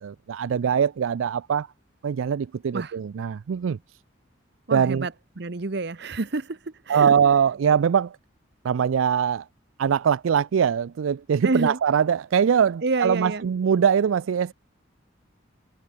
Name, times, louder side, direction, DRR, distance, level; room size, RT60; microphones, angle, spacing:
voice 1, 0.0-1.7 2.0-3.8 4.7-5.1 6.9-8.1 8.6-9.4 9.8-14.5, right 7 dB, 85° right, 0.4 m, -22 dB
voice 2, 4.7-6.6 6.9-7.1 11.4-11.8 12.8-13.5, right 3 dB, 55° right, 0.9 m, -28 dB
head